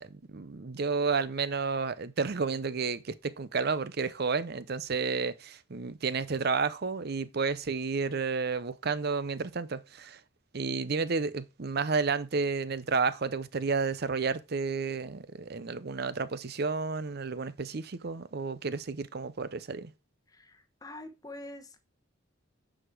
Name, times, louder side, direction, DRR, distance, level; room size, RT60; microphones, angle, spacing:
voice 1, 0.0-10.2 10.5-19.9, right 4 dB, 55° right, 0.6 m, -31 dB
voice 2, 20.3-21.8, left 1 dB, 20° left, 1.1 m, -45 dB
9.7 x 5.0 x 4.6 m
head